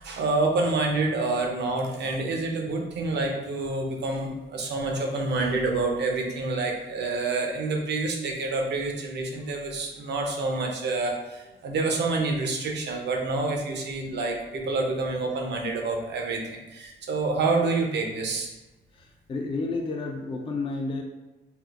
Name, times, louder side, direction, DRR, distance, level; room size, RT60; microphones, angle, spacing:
voice 1, 0.0-18.5, right 3 dB, 60° right, 2 dB, 0.7 m, -27 dB
voice 2, 19.0-21.0, left 3 dB, 25° left, 2 dB, 0.4 m, -31 dB
3.5 x 2.4 x 2.4 m, 1.1 s
cardioid pair, 90°, 20 cm